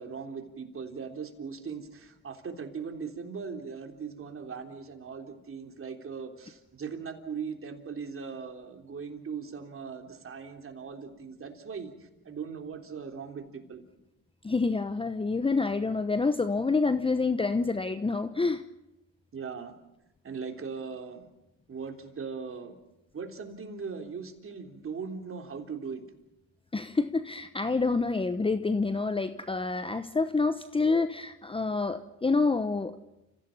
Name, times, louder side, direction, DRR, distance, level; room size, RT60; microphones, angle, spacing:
voice 1, 0.0-13.8 19.3-19.7 20.2-21.3 21.7-22.8 23.1-26.0, right 5 dB, 35° right, 4 dB, 3.5 m, -39 dB
voice 2, 14.4-18.6 26.7-33.0, left 3 dB, 15° left, 11 dB, 1.0 m, -27 dB
29.5 x 16.0 x 7.3 m, 0.95 s
supercardioid pair, 80°, 38 cm